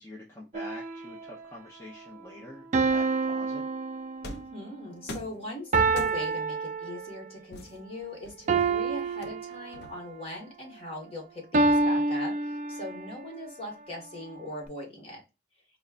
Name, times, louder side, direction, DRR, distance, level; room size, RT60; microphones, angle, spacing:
voice 1, 0.0-3.6, left 1 dB, 15° left, -5 dB, 0.7 m, -46 dB
sound 1, 0.5-1.4 2.7-4.6 5.7-7.3 8.5-10.1 11.5-13.2, right 3 dB, 45° right, 0.4 m, -28 dB
sound 2, 4.2-4.6 5.1-5.4 6.0-6.4 7.5-8.6 9.2-10.2, left 1 dB, 65° left, 0.6 m, -43 dB
voice 2, 4.2-15.2, left 1 dB, 35° left, 0 dB, 1.5 m, -40 dB
5.2 x 2.2 x 2.4 m, 0.27 s
head